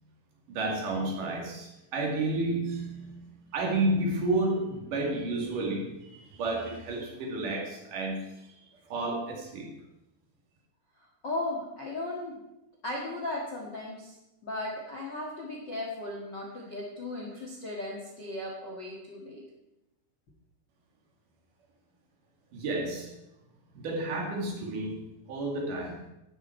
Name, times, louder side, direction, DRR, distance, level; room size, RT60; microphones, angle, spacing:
voice 1, 0.5-3.2 3.5-8.5 8.9-9.7 22.5-23.1 23.7-26.0, right 2 dB, 55° right, -1 dB, 3.5 m, -31 dB
voice 2, 11.0-12.4 12.8-14.2 14.4-19.4, left 2 dB, 60° left, -2 dB, 1.1 m, -36 dB
12.5 x 9.8 x 4.5 m, 0.91 s
omnidirectional pair, 5.0 m